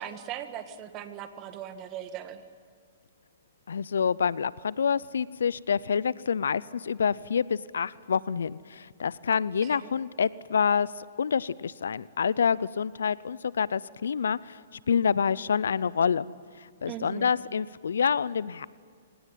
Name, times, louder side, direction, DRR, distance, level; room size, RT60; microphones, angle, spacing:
voice 1, 0.0-2.4 9.6-9.9 16.9-17.3, right 10 dB, 35° right, 9 dB, 1.9 m, -39 dB
voice 2, 3.7-16.3 16.8-18.7, left 6 dB, 80° left, 21 dB, 0.6 m, -27 dB
26.0 x 18.5 x 9.2 m, 2.1 s
hypercardioid pair, 125°, 0 cm